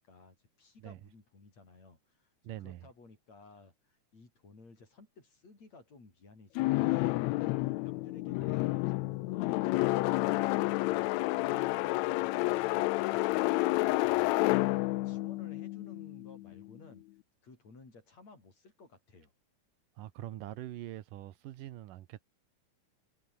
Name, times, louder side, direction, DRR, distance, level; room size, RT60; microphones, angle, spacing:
voice 1, 0.0-2.3 2.6-10.5 10.8-14.3 14.9-17.1 17.4-19.3, left 3 dB, 55° left, 8.0 m, -56 dB
voice 2, 2.4-2.9 8.5-8.6 20.0-22.3, right 14 dB, 85° right, 2.8 m, -44 dB
sound 1, 6.5-16.5, left 20 dB, 80° left, 1.6 m, -30 dB
omnidirectional pair, 3.7 m